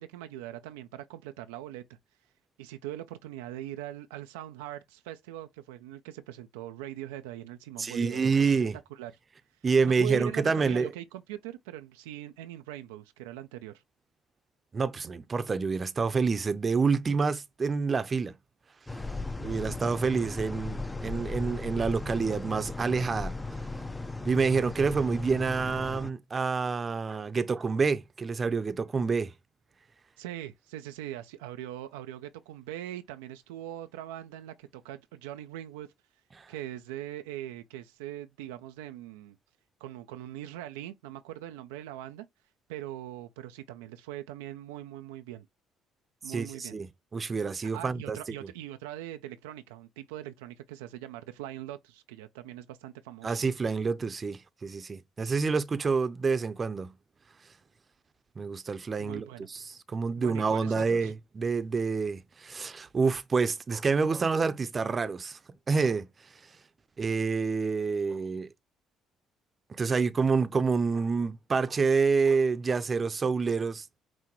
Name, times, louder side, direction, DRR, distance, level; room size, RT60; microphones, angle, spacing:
voice 1, 0.0-1.8 2.6-8.5 8.9-9.1 9.8-13.8 30.2-35.9 36.5-39.4 39.8-42.3 42.7-45.5 46.2-46.8 47.6-53.4 59.0-59.5 60.2-61.1, right 13 dB, 80° right, 0.3 m, -41 dB
voice 2, 7.8-8.8 9.6-10.9 14.7-18.3 19.4-23.4 24.2-29.3 36.4-36.5 46.3-46.9 47.1-48.2 53.2-56.9 58.4-65.4 65.7-66.1 67.0-68.5 69.8-74.0, right 4 dB, 35° right, 0.6 m, -28 dB
sound 1, 18.9-26.1, left 3 dB, 15° left, 0.5 m, -37 dB
5.9 x 2.1 x 3.0 m
hypercardioid pair, 55°, 0 cm